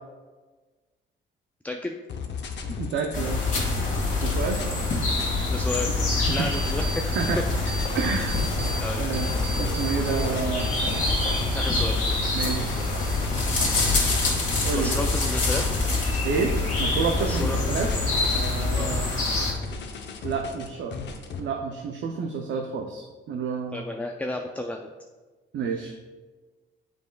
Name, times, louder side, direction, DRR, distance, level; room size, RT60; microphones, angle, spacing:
voice 1, 1.6-2.0 5.5-7.1 8.8-9.0 11.5-12.0 13.5-13.8 14.7-15.7 17.3-17.6 18.7-18.9 23.7-24.9, left 2 dB, 5° left, 4 dB, 0.3 m, -32 dB
sound 1, 2.1-21.4, left 5 dB, 60° left, 0.7 m, -35 dB
voice 2, 2.8-3.4 4.2-4.6 6.2-6.5 7.0-7.4 7.9-8.4 9.0-9.3 9.6-10.7 11.7-11.8 12.3-12.7 14.6-15.0 16.2-17.9 18.3-19.1 20.2-20.9 21.4-23.8 25.5-25.9, right 5 dB, 65° right, 2 dB, 0.6 m, -29 dB
sound 2, 3.1-19.5, left 2 dB, 40° left, 1.8 m, -26 dB
sound 3, 6.8-7.3 7.7-8.8 9.1-11.7 12.0-13.2 13.5-14.1, right 1 dB, 30° right, 0.9 m, -37 dB
7.8 x 5.2 x 2.3 m, 1.3 s
cardioid pair, 90°, 20 cm